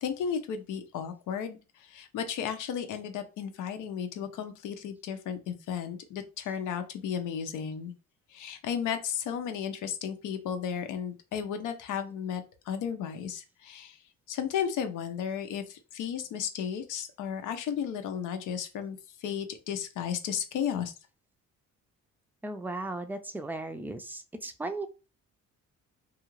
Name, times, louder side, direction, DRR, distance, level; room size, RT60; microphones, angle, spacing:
voice 1, 0.0-7.9 8.3-14.0 14.3-20.9, left 8 dB, 85° left, 8 dB, 0.6 m, -34 dB
voice 2, 22.4-24.0 24.4-24.9, right 2 dB, 5° right, 9 dB, 0.4 m, -35 dB
2.4 x 2.4 x 3.0 m, 0.31 s
cardioid pair, 90°, 30 cm